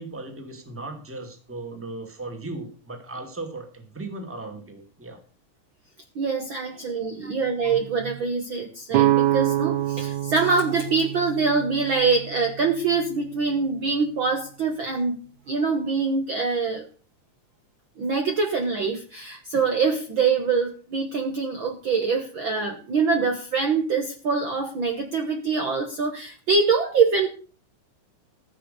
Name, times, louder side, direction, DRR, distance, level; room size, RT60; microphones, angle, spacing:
voice 1, 0.0-5.2 6.7-6.8 7.2-7.3, right 2 dB, 5° right, 5 dB, 1.8 m, -37 dB
voice 2, 6.1-15.2 15.5-16.9 18.0-27.3, right 4 dB, 50° right, 3 dB, 1.7 m, -24 dB
sound 1, 8.9-12.7, right 14 dB, 80° right, 2.2 m, -25 dB
15.0 x 6.6 x 6.8 m, 0.40 s
omnidirectional pair, 3.3 m